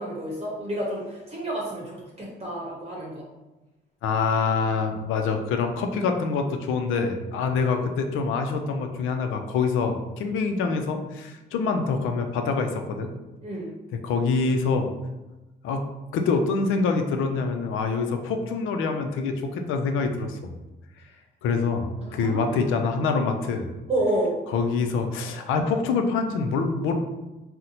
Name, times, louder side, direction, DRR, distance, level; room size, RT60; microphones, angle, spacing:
voice 1, 0.0-3.2 13.4-13.7 22.0-22.8 23.9-24.3, right 1 dB, 30° right, -4 dB, 0.8 m, -30 dB
voice 2, 4.0-13.1 14.0-14.9 15.6-15.8 16.1-20.6 21.4-23.7 24.5-26.9, left 4 dB, 90° left, 5 dB, 0.4 m, -25 dB
2.8 x 2.1 x 4.0 m, 1.1 s
cardioid pair, 90°, 20 cm